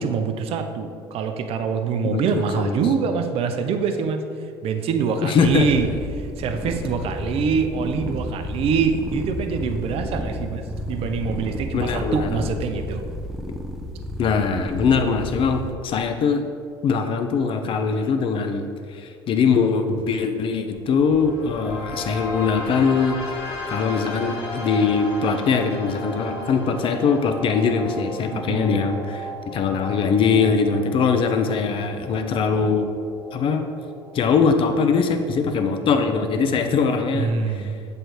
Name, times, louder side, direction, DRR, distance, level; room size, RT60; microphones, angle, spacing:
voice 1, 0.0-4.2 4.6-5.9 6.1-13.0 28.3-28.7 37.1-37.8, right 5 dB, 50° right, 6 dB, 0.6 m, -25 dB
voice 2, 2.0-2.8 5.2-5.7 11.7-12.3 14.2-16.4 16.8-23.2 23.7-32.9 33.3-33.6 34.1-37.7, left 5 dB, 45° left, 7 dB, 0.6 m, -22 dB
sound 1, 5.4-15.7, equal, 5° right, 0.6 m, -32 dB
sound 2, 20.7-36.7, left 1 dB, 75° left, 1.1 m, -35 dB
7.6 x 3.3 x 4.4 m, 2.3 s
hypercardioid pair, 70°, 13 cm